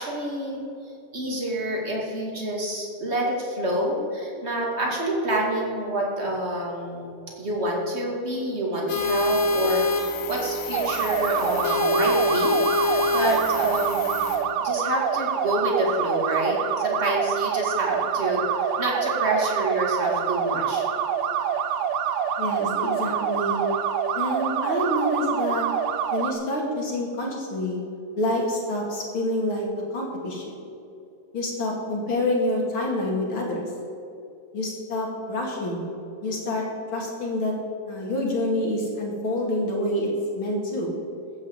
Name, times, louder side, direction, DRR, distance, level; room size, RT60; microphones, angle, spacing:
voice 1, 0.0-14.2 14.6-20.9, right 1 dB, 20° right, -2 dB, 2.2 m, -28 dB
sound 1, 8.9-14.4, left 2 dB, 55° left, 2.9 m, -25 dB
sound 2, 10.7-26.3, right 8 dB, 80° right, 2.3 m, -26 dB
voice 2, 22.4-23.6 24.1-25.7 26.1-27.8 28.2-29.7 29.9-30.6 31.3-33.7 34.5-35.9 36.2-36.6 36.9-37.5 37.9-40.1 40.4-40.9, left 1 dB, 40° left, -1 dB, 2.6 m, -27 dB
15.0 x 7.3 x 8.0 m, 2.7 s
omnidirectional pair, 3.9 m